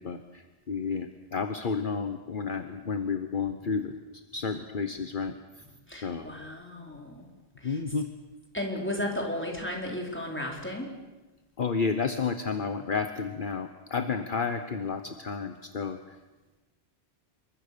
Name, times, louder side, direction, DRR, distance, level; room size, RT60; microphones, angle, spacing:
voice 1, 0.0-5.6 6.0-6.3 7.6-8.1 11.6-16.0, left 5 dB, 50° left, 8 dB, 1.2 m, -31 dB
voice 2, 5.9-7.3 7.6-7.8 8.5-10.9, left 1 dB, 10° left, 0 dB, 4.7 m, -34 dB
27.5 x 23.5 x 6.9 m, 1.2 s
omnidirectional pair, 1.1 m